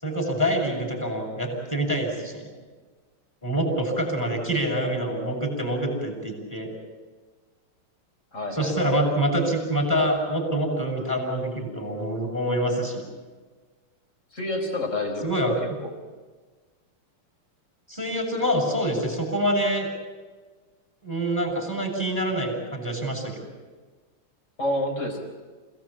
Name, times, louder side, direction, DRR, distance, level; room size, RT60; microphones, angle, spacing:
voice 1, 0.0-2.5 3.4-6.7 8.5-13.0 15.2-15.5 17.9-19.9 21.0-23.4, right 1 dB, 5° left, 3 dB, 6.9 m, -26 dB
voice 2, 8.3-9.0 14.3-15.3 15.6-15.7 24.6-25.2, left 1 dB, 35° left, 3 dB, 4.8 m, -28 dB
29.0 x 17.5 x 8.7 m, 1.4 s
omnidirectional pair, 2.4 m